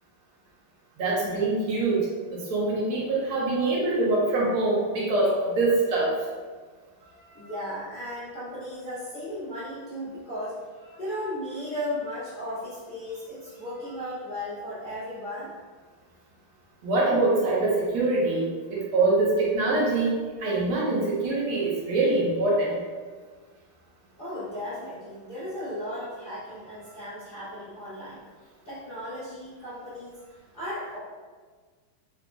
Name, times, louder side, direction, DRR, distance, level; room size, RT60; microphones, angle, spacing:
voice 1, 1.0-6.1 16.8-22.8, right 2 dB, 85° right, -5 dB, 1.7 m, -24 dB
voice 2, 7.0-15.5 24.2-28.2 28.6-31.0, left 1 dB, 60° left, -12 dB, 0.5 m, -36 dB
4.0 x 2.8 x 2.2 m, 1.5 s
omnidirectional pair, 2.3 m